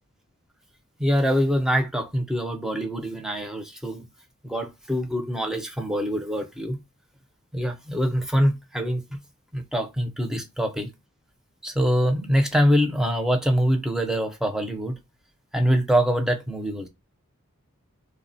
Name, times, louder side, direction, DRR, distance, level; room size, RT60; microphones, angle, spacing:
voice 1, 1.0-4.1 4.4-6.8 7.5-9.2 9.5-10.9 11.6-15.0 15.5-16.9, equal, 5° right, 0.4 m, -24 dB
3.6 x 2.0 x 2.6 m
head